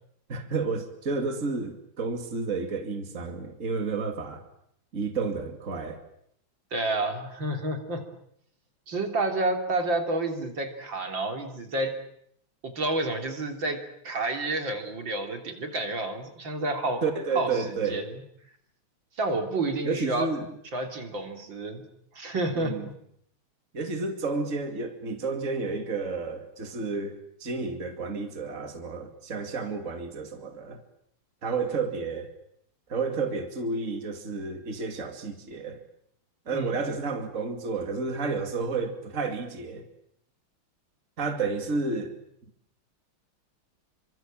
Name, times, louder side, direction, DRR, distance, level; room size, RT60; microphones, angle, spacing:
voice 1, 0.3-4.4 4.9-6.0 17.0-18.1 19.8-20.5 22.5-22.9 23.7-30.8 31.4-32.3 32.9-35.8 36.5-39.8 41.2-42.1, right 4 dB, 35° right, 5 dB, 2.9 m, -31 dB
voice 2, 6.7-8.0 8.9-11.9 12.6-17.0 17.4-18.0 19.2-20.3 20.7-21.8 22.1-22.7 36.5-36.8, right 2 dB, 65° right, 4 dB, 4.0 m, -29 dB
29.5 x 25.0 x 7.6 m, 0.73 s
omnidirectional pair, 2.3 m